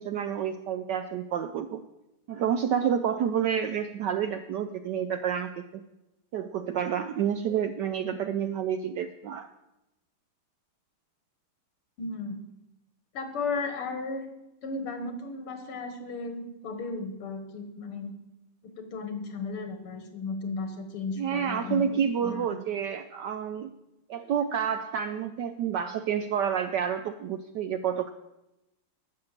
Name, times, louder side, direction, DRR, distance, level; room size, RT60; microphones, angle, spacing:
voice 1, 0.0-1.8 2.3-5.8 6.3-9.5 21.2-23.7 24.1-28.1, right 8 dB, 75° right, 9 dB, 1.0 m, -29 dB
voice 2, 12.0-12.4 13.1-14.3 14.6-18.1 18.6-22.6, left 3 dB, 80° left, 6 dB, 2.4 m, -35 dB
11.5 x 6.6 x 7.4 m, 0.93 s
omnidirectional pair, 2.4 m